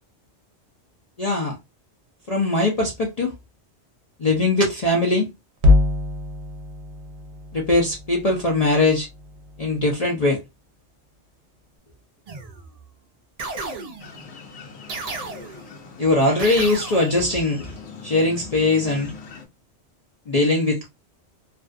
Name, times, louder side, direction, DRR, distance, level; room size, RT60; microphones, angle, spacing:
voice 1, 1.2-1.5 2.3-3.3 4.2-5.2 7.5-9.1 9.6-10.4 16.0-17.7 18.0-19.1 20.3-20.9, left 2 dB, 45° left, 0.5 m, -20 dB
sound 1, 5.6-9.9, left 3 dB, 70° right, 0.8 m, -24 dB
sound 2, 12.3-12.8 13.4-14.2 14.9-15.8 16.4-17.3, right 3 dB, 50° right, 0.5 m, -34 dB
sound 3, 14.0-19.5, left 5 dB, 70° left, 0.9 m, -41 dB
2.5 x 2.3 x 2.4 m
omnidirectional pair, 1.2 m